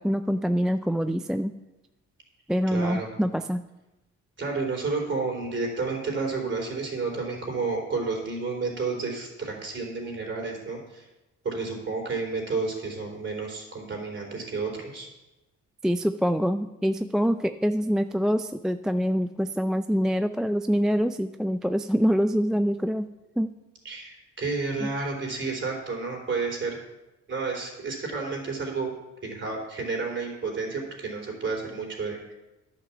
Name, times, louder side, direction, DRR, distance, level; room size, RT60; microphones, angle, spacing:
voice 1, 0.0-1.5 2.5-3.6 15.8-23.1 23.4-23.5 24.8-24.9, equal, ahead, 9 dB, 0.3 m, -25 dB
voice 2, 2.7-3.1 4.4-11.1 11.4-15.1 23.8-26.8 27.3-28.9 29.2-32.3, right 4 dB, 40° right, 0 dB, 3.8 m, -31 dB
10.5 x 6.0 x 7.2 m, 1.0 s
cardioid pair, 90°, 30 cm